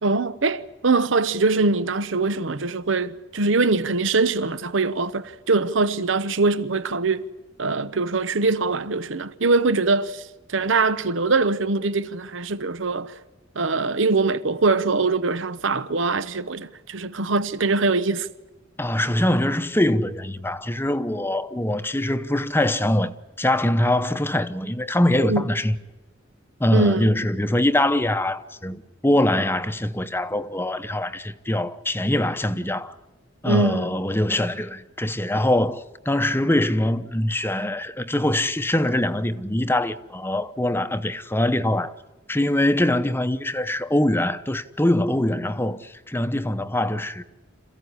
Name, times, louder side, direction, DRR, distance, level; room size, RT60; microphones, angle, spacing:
voice 1, 0.0-7.2 7.6-13.1 13.5-18.3 25.2-25.4 26.7-27.1 33.4-33.9, right 3 dB, 70° right, 0.9 m, -23 dB
voice 2, 18.8-25.7 26.6-32.9 33.4-41.9 42.3-47.2, left 1 dB, 10° left, 0.9 m, -23 dB
27.5 x 15.5 x 9.8 m
head